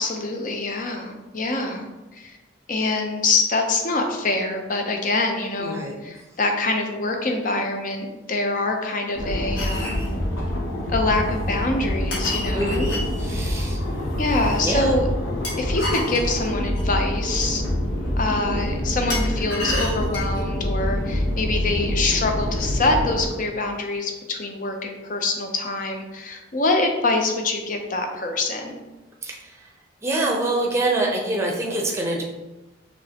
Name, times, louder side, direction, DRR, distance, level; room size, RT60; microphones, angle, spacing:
voice 1, 0.0-2.4 2.7-10.1 10.9-12.9 13.4-13.5 14.2-15.1 15.6-17.6 18.2-28.8, left 2 dB, 40° left, 3 dB, 0.5 m, -25 dB
voice 2, 5.6-6.0 12.5-13.8 14.6-15.0 29.2-29.7 30.0-32.2, right 2 dB, 15° right, -1 dB, 0.6 m, -25 dB
sound 1, 9.1-23.2, left 1 dB, 90° left, 1.0 m, -26 dB
sound 2, 9.6-10.1 12.1-13.1 15.4-16.9 19.1-20.4, left 1 dB, 65° left, 1.4 m, -30 dB
5.3 x 3.2 x 2.8 m, 1.1 s
head